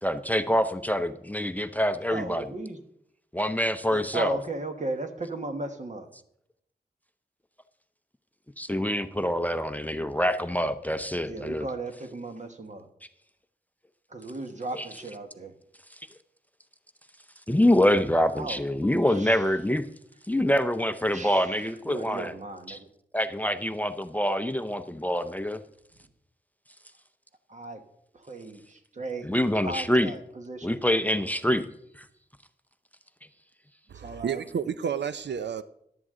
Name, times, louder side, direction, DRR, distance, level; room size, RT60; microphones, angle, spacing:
voice 1, 0.0-2.5 3.3-4.4 8.6-11.7 14.7-14.9 17.5-19.8 20.3-22.4 22.7-22.8 23.1-25.6 29.2-30.2 30.6-31.7 32.0-32.1, equal, 10° left, 0.6 m, -25 dB
voice 2, 2.1-2.8 3.9-6.1 11.3-12.9 14.1-15.5 18.4-18.6 19.1-19.4 21.1-21.5 21.9-22.9 27.5-27.8 28.1-29.3 29.6-30.8 34.0-34.4, right 2 dB, 45° right, 1.3 m, -36 dB
voice 3, 33.9-35.6, right 7 dB, 85° right, 0.5 m, -31 dB
14.0 x 11.0 x 3.7 m
wide cardioid pair, 110°, 18 cm